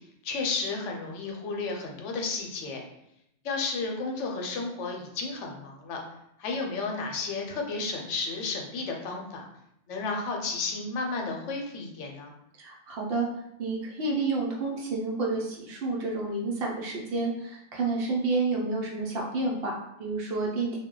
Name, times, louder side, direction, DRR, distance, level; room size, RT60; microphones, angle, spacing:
voice 1, 0.2-2.8 3.4-6.0 6.4-9.4 9.9-12.3, left 3 dB, 85° left, 1 dB, 0.9 m, -32 dB
voice 2, 12.6-13.3 13.6-20.8, right 3 dB, 60° right, -2 dB, 0.8 m, -30 dB
2.2 x 2.1 x 3.7 m, 0.79 s
omnidirectional pair, 1.2 m